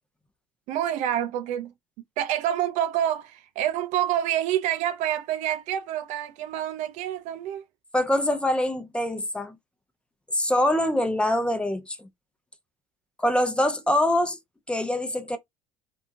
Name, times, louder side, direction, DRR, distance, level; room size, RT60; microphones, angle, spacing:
voice 1, 0.7-1.7 2.2-7.6, right 11 dB, 65° right, 0.5 m, -27 dB
voice 2, 7.9-9.6 10.3-12.1 13.2-14.4 14.7-15.4, left 1 dB, 10° left, 0.7 m, -24 dB
2.7 x 2.4 x 2.5 m
hypercardioid pair, 75°, 13 cm